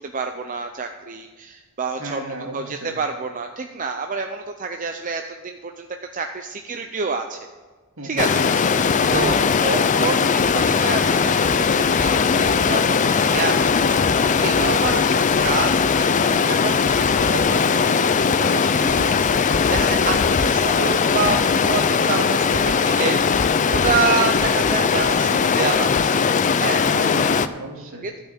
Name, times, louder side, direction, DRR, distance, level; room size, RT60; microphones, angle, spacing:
voice 1, 0.0-5.9 6.1-7.5 8.0-26.9 28.0-28.2, right 4 dB, 35° right, 5 dB, 0.6 m, -28 dB
voice 2, 2.0-2.9 8.0-8.3 9.0-9.8 26.8-28.0, right 1 dB, 65° right, 0 dB, 2.3 m, -34 dB
Stream, 8.2-27.5, left 5 dB, 35° left, 0.4 m, -19 dB
12.5 x 5.7 x 8.6 m, 1.4 s
head